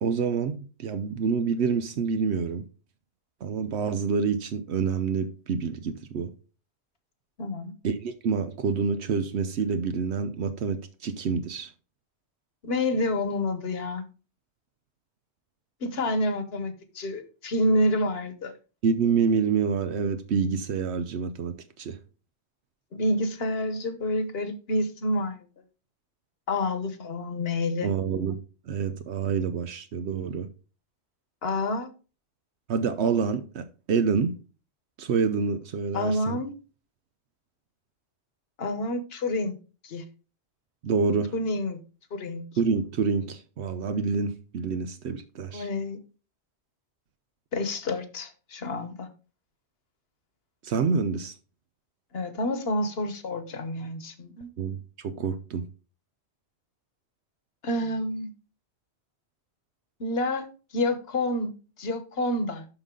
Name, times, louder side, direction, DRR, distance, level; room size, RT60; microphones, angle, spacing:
voice 1, 0.0-2.7 3.4-6.3 7.8-11.7 18.8-22.0 27.8-30.5 32.7-34.4 35.0-36.4 40.8-41.3 42.6-45.7 50.6-51.3 54.6-55.7, right 5 dB, 75° right, 0.9 m, -27 dB
voice 2, 7.4-7.7 12.6-14.0 15.8-18.5 22.9-25.4 26.5-27.9 31.4-31.9 35.9-36.5 38.6-39.6 39.8-40.0 41.3-41.8 42.1-42.4 45.5-46.0 47.5-49.1 52.1-54.5 57.6-58.3 60.0-60.5 60.7-61.5 61.8-62.7, left 1 dB, 60° left, 1.3 m, -28 dB
11.5 x 4.0 x 3.7 m
omnidirectional pair, 1.1 m